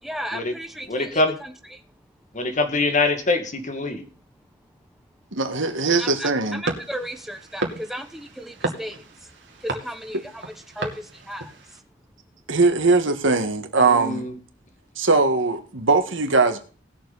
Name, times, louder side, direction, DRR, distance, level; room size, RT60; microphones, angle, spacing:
voice 1, 0.0-1.8 6.0-9.3 9.6-11.8, equal, ahead, 6 dB, 1.1 m, -35 dB
voice 2, 0.9-1.3 2.3-4.0 13.8-14.3, left 2 dB, 40° left, 6 dB, 2.0 m, -24 dB
voice 3, 5.3-6.6 12.5-14.3 14.9-16.6, right 3 dB, 90° right, 7 dB, 1.8 m, -20 dB
sound 1, 6.6-11.8, right 2 dB, 65° right, 2.5 m, -34 dB
19.0 x 7.0 x 4.1 m, 0.40 s
head